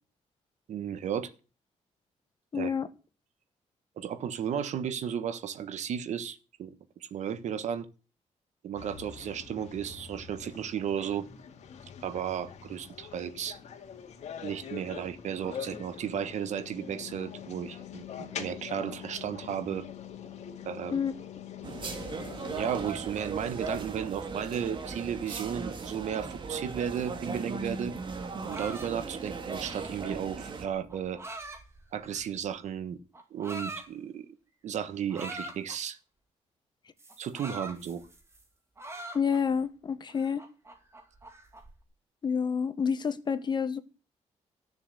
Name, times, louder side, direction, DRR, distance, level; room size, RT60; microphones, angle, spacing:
voice 1, 0.7-1.3 2.5-2.7 4.0-6.7 7.0-7.9 8.6-11.3 12.0-13.6 14.4-19.9 20.6-21.0 22.5-28.0 28.4-31.2 31.9-33.0 33.3-34.3 34.6-36.0 37.2-38.1, right 8 dB, 75° right, 1.4 m, -34 dB
voice 2, 2.5-2.9 20.9-21.1 39.1-40.4 42.2-43.8, left 6 dB, 40° left, 1.3 m, -28 dB
sound 1, 8.8-22.9, left 8 dB, 70° left, 2.3 m, -44 dB
sound 2, 21.6-30.7, right 4 dB, 40° right, 1.9 m, -38 dB
sound 3, 28.2-32.5 33.1-33.9 35.1-35.8 37.0-38.4 38.8-39.6 40.1-41.7, right 2 dB, 20° right, 2.3 m, -43 dB
14.0 x 7.0 x 8.3 m
cardioid pair, 140°, 12 cm